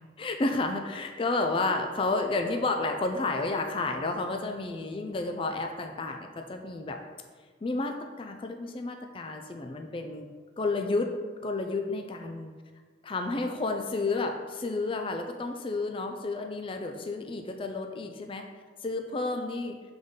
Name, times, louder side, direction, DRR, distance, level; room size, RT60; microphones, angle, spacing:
voice 1, 0.2-7.0 7.6-10.3 10.6-11.1 11.4-12.5 13.0-18.4 18.8-19.8, left 3 dB, 30° left, 4 dB, 0.4 m, -31 dB
6.8 x 3.9 x 3.6 m, 1.5 s
head